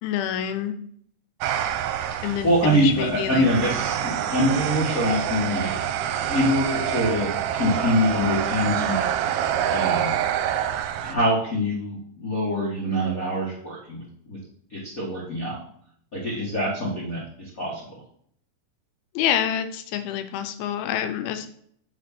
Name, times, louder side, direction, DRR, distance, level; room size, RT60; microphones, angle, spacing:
voice 1, 0.0-0.8 2.2-3.8 19.2-21.5, left 10 dB, 80° left, 9 dB, 2.5 m, -27 dB
sound 1, 1.4-11.1, right 10 dB, 80° right, 2.4 m, -27 dB
voice 2, 2.2-5.7 6.3-9.1 9.7-10.2 11.0-14.4 14.7-15.6 16.1-17.8, equal, 60° left, -6 dB, 0.8 m, -24 dB
7.6 x 4.8 x 5.9 m, 0.64 s
omnidirectional pair, 4.6 m